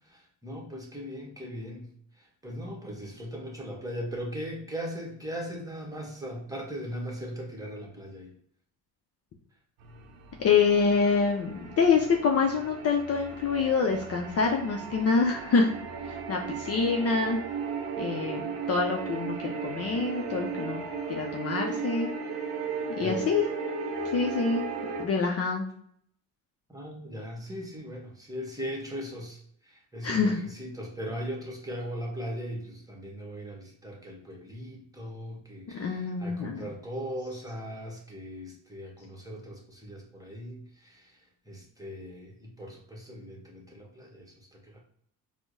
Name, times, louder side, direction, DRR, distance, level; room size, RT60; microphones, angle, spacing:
voice 1, 0.0-8.3 23.0-23.2 26.7-44.8, equal, 10° right, -1 dB, 1.1 m, -39 dB
sound 1, 9.8-25.0, right 5 dB, 80° right, 0.6 m, -36 dB
voice 2, 10.4-15.7 16.0-17.4 18.0-20.8 21.1-22.1 22.9-23.5 24.1-24.6 25.0-25.7 30.0-30.4 35.7-36.7, left 5 dB, 40° left, 1 dB, 0.5 m, -26 dB
4.3 x 2.1 x 2.6 m, 0.66 s
supercardioid pair, 70°, 39 cm